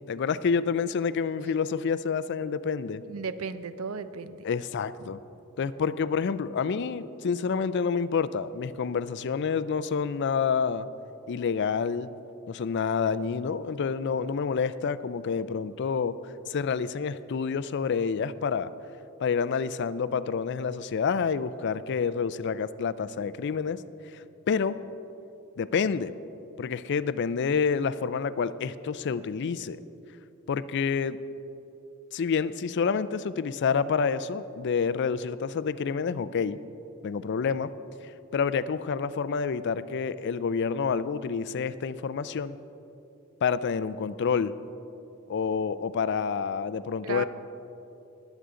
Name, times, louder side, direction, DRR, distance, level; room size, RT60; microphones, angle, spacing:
voice 1, 0.1-3.0 4.4-5.2 5.6-10.9 11.3-12.1 12.5-16.1 16.5-18.7 19.2-23.8 24.1-24.8 25.6-26.1 26.6-29.8 30.5-31.2 32.1-36.6 37.0-37.7 38.0-42.6 43.4-44.5 45.3-47.2, left 6 dB, 55° left, 15 dB, 0.4 m, -28 dB
voice 2, 3.0-4.4 5.0-5.1 47.0-47.2, right 5 dB, 80° right, 13 dB, 0.5 m, -35 dB
20.5 x 8.2 x 3.8 m, 3.0 s
head